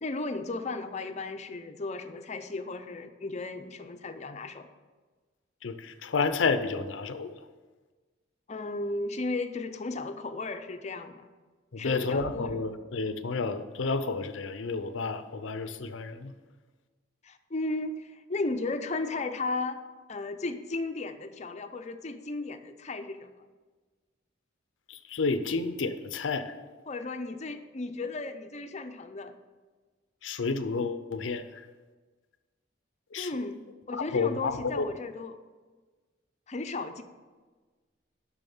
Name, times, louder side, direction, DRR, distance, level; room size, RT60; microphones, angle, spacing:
voice 1, 0.0-4.7 8.5-11.3 11.8-12.7 17.2-19.8 20.1-23.3 26.9-29.4 33.2-35.4 36.5-37.0, left 3 dB, 35° left, 8 dB, 0.6 m, -35 dB
voice 2, 5.6-7.3 11.7-16.3 24.9-26.5 30.2-31.5 33.1-33.3 33.9-34.9, left 4 dB, 80° left, 10 dB, 0.6 m, -30 dB
7.2 x 6.2 x 7.0 m, 1.4 s
head